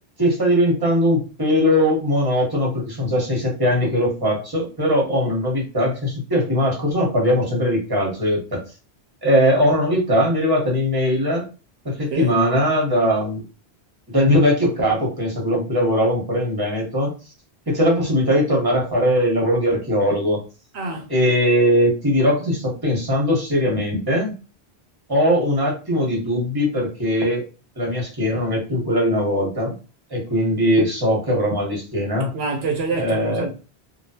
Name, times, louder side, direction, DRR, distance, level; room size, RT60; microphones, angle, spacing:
voice 1, 0.2-8.6 9.2-11.4 11.8-13.4 14.1-17.1 17.7-20.4 21.1-24.3 25.1-27.4 27.8-29.7 30.1-32.3 33.0-33.5, equal, 20° right, 1.2 m, -20 dB
voice 2, 20.7-21.1 32.3-33.5, right 4 dB, 75° right, 0.8 m, -26 dB
3.2 x 2.4 x 2.7 m
omnidirectional pair, 1.1 m